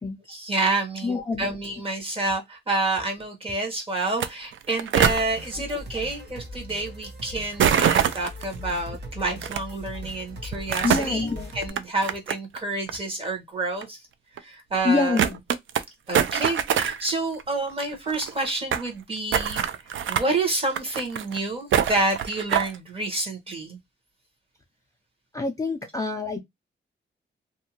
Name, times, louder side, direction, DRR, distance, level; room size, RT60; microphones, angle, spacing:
voice 1, 0.3-11.3 11.5-14.0 14.4-15.2 16.1-19.6 20.1-23.8, right 2 dB, 30° right, 1.0 m, -28 dB
voice 2, 1.0-1.5 10.8-11.5 14.8-15.4 25.3-26.4, left 3 dB, 15° left, 0.3 m, -26 dB
sound 1, 4.1-4.3 4.5-5.2 7.6-8.4 9.4-9.6 10.5-11.1 11.6-12.6 12.9-13.0 13.8-13.9 14.4-14.5 14.7-14.8 15.2-15.8 16.1-17.1 17.4-17.5 17.7-17.8 17.9-18.9 19.3-20.3 20.7-21.4 21.7-22.8, right 9 dB, 80° right, 0.4 m, -24 dB
sound 2, 5.0-11.7, left 1 dB, 60° right, 0.8 m, -39 dB
2.6 x 2.2 x 2.8 m
wide cardioid pair, 165°, 20 cm